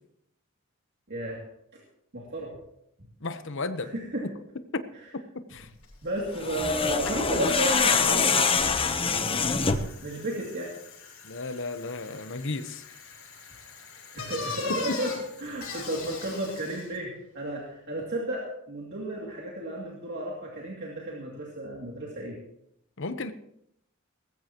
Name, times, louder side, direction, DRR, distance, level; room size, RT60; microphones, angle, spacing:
voice 1, 1.1-1.4 1.7-1.8 2.1-2.6 3.0-3.1 3.8-4.3 4.9-5.1 6.0-9.4 10.0-10.7 11.1-11.2 14.1-22.4, right 1 dB, 55° right, -3 dB, 2.7 m, -33 dB
voice 2, 3.2-3.9 5.3-5.7 11.2-12.8 23.0-23.3, left 3 dB, 60° left, 11 dB, 1.0 m, -34 dB
Bicycle, 5.8-5.9 6.2-17.0, left 4 dB, 80° left, 7.3 m, -42 dB
sound 1, 6.3-10.0, left 5 dB, 25° left, 0.9 m, -25 dB
19.5 x 15.0 x 3.0 m, 0.77 s
head